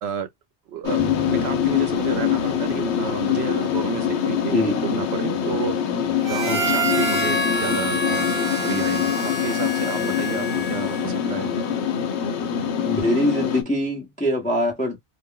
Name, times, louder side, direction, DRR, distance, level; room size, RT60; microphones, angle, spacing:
voice 1, 0.7-1.0 1.3-4.5 4.8-5.8 6.2-8.3 8.6-11.5, right 8 dB, 70° right, 0.8 m, -31 dB
sound 1, 0.8-13.6, left 8 dB, 75° left, 0.9 m, -24 dB
sound 2, 1.0-4.4, left 1 dB, 45° left, 0.5 m, -37 dB
voice 2, 4.5-4.9 6.4-6.6 12.8-15.0, left 1 dB, 10° left, 0.7 m, -23 dB
Harmonica, 6.2-11.2, equal, 30° right, 0.6 m, -27 dB
2.4 x 2.1 x 3.7 m
omnidirectional pair, 1.2 m